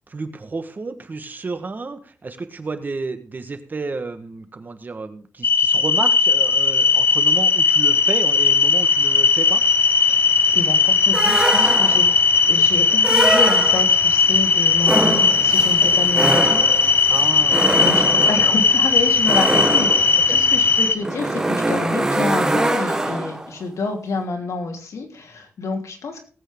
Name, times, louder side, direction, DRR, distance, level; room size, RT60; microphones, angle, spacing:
voice 1, 0.1-9.6 17.1-17.7 18.3-18.4 20.3-20.4, right 3 dB, 35° right, 9 dB, 1.4 m, -31 dB
sound 1, 5.4-20.9, left 4 dB, 45° left, 1.0 m, -17 dB
voice 2, 10.1-12.0 12.5-16.6 17.8-26.2, left 3 dB, 80° left, 3 dB, 3.0 m, -28 dB
sound 2, 11.1-12.2 13.0-14.1 14.8-23.5, right 1 dB, 15° right, 1.6 m, -23 dB
18.5 x 8.3 x 3.7 m, 0.36 s
wide cardioid pair, 130°, 5 cm